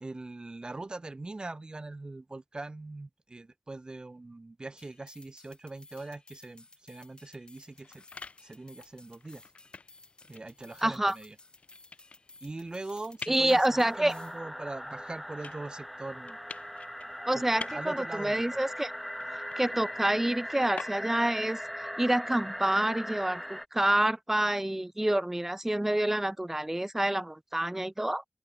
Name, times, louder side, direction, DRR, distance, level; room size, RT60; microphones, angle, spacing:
voice 1, 0.0-8.0 8.4-9.4 10.3-11.3 12.4-16.4 17.3-18.4, right 2 dB, 45° right, 1.3 m, -42 dB
sound 1, 4.8-14.4, left 2 dB, 50° left, 4.2 m, -57 dB
sound 2, 7.5-21.4, left 4 dB, 85° left, 5.7 m, -49 dB
voice 2, 10.8-11.2 13.3-14.1 17.3-18.9 19.6-21.6 22.0-28.2, right 1 dB, 15° right, 0.3 m, -27 dB
sound 3, 13.5-23.7, equal, ahead, 0.8 m, -39 dB
open air
wide cardioid pair, 55°, 2 cm